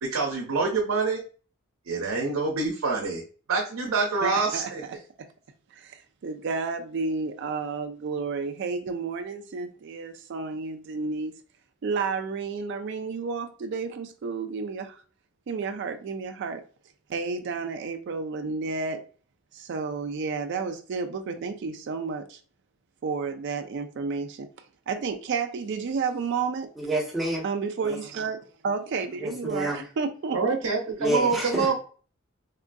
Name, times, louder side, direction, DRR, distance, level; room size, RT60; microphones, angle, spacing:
voice 1, 0.0-1.2 1.9-3.2 3.5-4.8 30.3-31.7, right 4 dB, 90° right, 0.7 m, -26 dB
voice 2, 4.2-4.7 5.7-11.3 11.8-15.0 15.5-16.6 17.1-19.0 19.5-22.4 23.0-24.5 24.9-26.7 27.4-30.6, right 4 dB, 55° right, 0.4 m, -31 dB
voice 3, 26.8-27.4 27.8-28.0 29.2-29.8 31.0-31.7, right 1 dB, ahead, 1.1 m, -28 dB
3.6 x 2.5 x 2.2 m
head